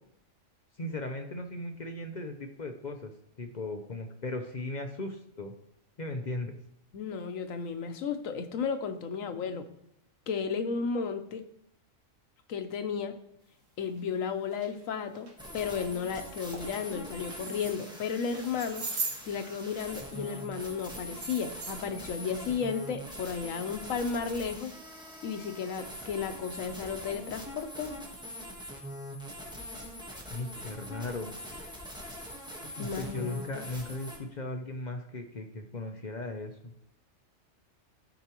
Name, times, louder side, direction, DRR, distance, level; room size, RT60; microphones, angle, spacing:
voice 1, 0.8-3.1 3.4-5.5 6.0-6.6 30.3-31.3 32.6-36.7, left 2 dB, 45° left, 5 dB, 0.6 m, -37 dB
voice 2, 6.9-9.7 10.3-11.4 12.5-13.1 13.8-18.8 19.3-24.7 25.2-27.9 32.8-33.6, left 6 dB, 85° left, 8 dB, 1.2 m, -33 dB
sound 1, 13.9-14.0 14.5-14.7 15.1-15.3 15.8-16.0 16.3-16.7 17.2-18.0 18.3-20.1 20.4-21.7, right 3 dB, 70° right, 1.8 m, -39 dB
sound 2, 15.4-34.2, equal, 5° right, 1.1 m, -43 dB
13.0 x 4.6 x 2.9 m, 0.76 s
omnidirectional pair, 1.3 m